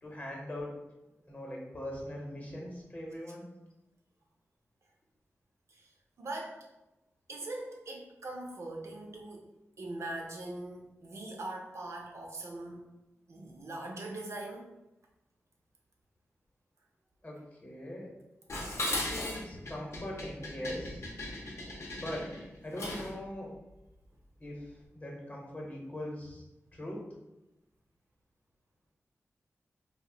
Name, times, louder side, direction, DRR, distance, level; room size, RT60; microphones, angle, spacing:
voice 1, 0.0-0.8 1.3-3.5 17.2-18.1 18.7-21.1 21.9-22.4 22.6-23.6 24.4-26.4 26.7-27.0, left 1 dB, 35° left, -2 dB, 0.8 m, -41 dB
voice 2, 6.2-6.6 7.3-9.5 9.8-12.8 13.3-14.7, right 2 dB, 70° right, 0 dB, 0.5 m, -41 dB
Dishes pots and pans, 18.5-23.2, left 1 dB, 70° left, 0.6 m, -37 dB
2.5 x 2.0 x 3.7 m, 0.97 s
wide cardioid pair, 110°, 5 cm